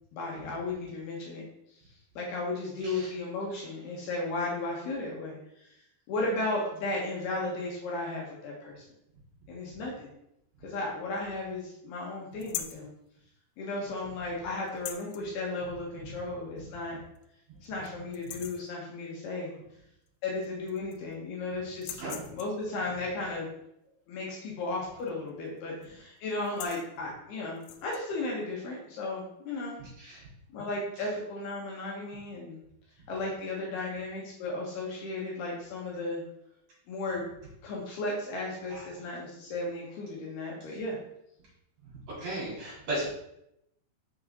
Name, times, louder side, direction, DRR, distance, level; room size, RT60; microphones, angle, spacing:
voice 1, 0.1-1.4 2.2-5.7 6.1-8.8 9.5-10.1 10.6-12.9 13.6-17.0 17.6-19.5 20.2-22.0 22.3-23.5 24.1-29.8 30.5-32.6 33.1-36.2 36.9-37.2 37.6-41.0, left 2 dB, 70° left, -3 dB, 3.0 m, -35 dB
sound 1, 12.4-12.9 14.7-15.2 16.6-16.7 17.2-17.3 17.6-17.9 18.1-18.7 20.1-20.2 20.4-21.1 21.7-22.6 25.0-25.3 25.6-25.9 26.3-26.9 27.6-28.0, left 11 dB, 85° left, 2.9 m, -41 dB
voice 2, 29.8-30.3 31.0-31.1 38.7-38.9 41.8-43.1, right 1 dB, 40° right, -7 dB, 3.6 m, -37 dB
7.1 x 4.7 x 4.3 m, 0.79 s
omnidirectional pair, 5.2 m